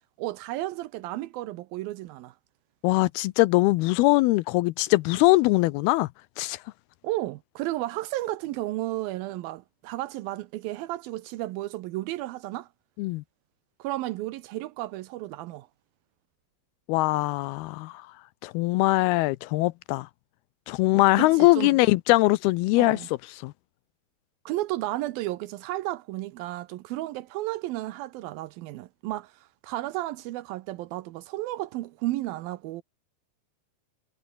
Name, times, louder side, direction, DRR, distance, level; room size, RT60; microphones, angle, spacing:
voice 1, 0.2-2.3 7.0-12.7 13.8-15.7 21.2-21.8 22.8-23.1 24.5-32.8, right 16 dB, 85° right, 2.1 m, -33 dB
voice 2, 2.8-6.1 6.4-6.6 13.0-13.2 16.9-18.1 18.4-20.1 20.7-23.0 23.3-23.5, left 20 dB, 90° left, 2.2 m, -22 dB
omnidirectional pair, 5.2 m